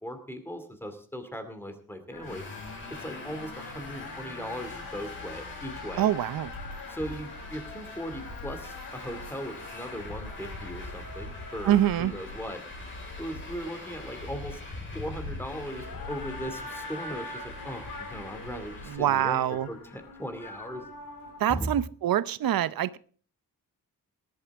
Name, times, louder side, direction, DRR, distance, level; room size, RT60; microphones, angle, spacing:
voice 1, 0.0-2.4 2.9-6.1 6.9-12.6 13.2-14.6 14.9-19.4 19.7-20.9 21.5-21.7, equal, 5° left, 8 dB, 2.4 m, -38 dB
sound 1, 2.1-21.8, left 3 dB, 75° left, 3.3 m, -45 dB
Traffic noise roadway noise, 2.2-19.0, left 2 dB, 35° left, 4.7 m, -42 dB
voice 2, 6.0-6.5 11.6-12.1 18.9-19.7 21.4-23.0, right 11 dB, 80° right, 17 dB, 0.8 m, -25 dB
19.0 x 11.5 x 3.6 m, 0.42 s
wide cardioid pair, 165°, 34 cm